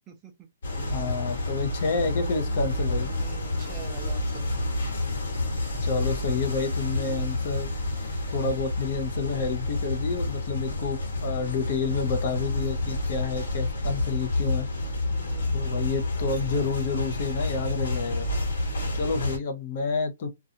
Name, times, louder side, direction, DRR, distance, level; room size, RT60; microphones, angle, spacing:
voice 1, 0.1-0.5 1.2-1.5 3.0-4.4 15.1-15.5 19.0-19.4, right 8 dB, 15° right, 0.5 m, -46 dB
sound 1, 0.6-19.4, left 2 dB, 70° left, 1.3 m, -29 dB
voice 2, 0.9-3.1 5.8-7.7 8.3-14.7 15.5-18.3 18.9-20.3, left 5 dB, 35° left, 0.6 m, -29 dB
2.5 x 2.2 x 2.7 m
hypercardioid pair, 175°, 0 cm